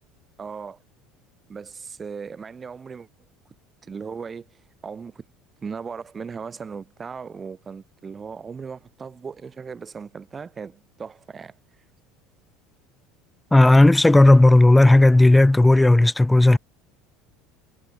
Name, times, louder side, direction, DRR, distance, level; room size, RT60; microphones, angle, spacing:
voice 1, 0.4-0.8 1.5-3.1 3.8-4.5 4.8-5.2 5.6-11.6, right 5 dB, 25° right, 5.4 m, -37 dB
voice 2, 13.5-16.6, left 2 dB, 10° left, 0.7 m, -13 dB
figure-of-eight pair, 70°, 0 cm